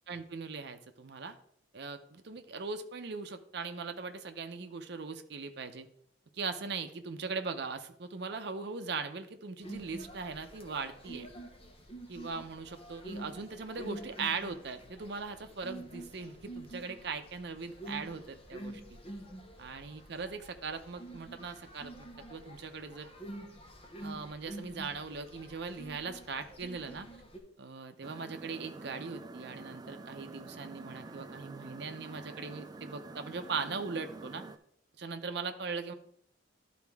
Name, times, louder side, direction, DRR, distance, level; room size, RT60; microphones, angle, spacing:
voice 1, 0.1-1.3 1.7-5.9 6.3-11.3 12.1-19.0 19.6-21.9 22.3-23.1 24.0-27.1 27.6-34.4 35.0-35.9, right 4 dB, 60° right, 7 dB, 0.6 m, -40 dB
sound 1, 9.6-27.4, right 1 dB, 30° left, 1.0 m, -47 dB
sound 2, 28.0-34.6, right 3 dB, 20° right, 0.3 m, -47 dB
11.5 x 4.2 x 3.5 m, 0.69 s
head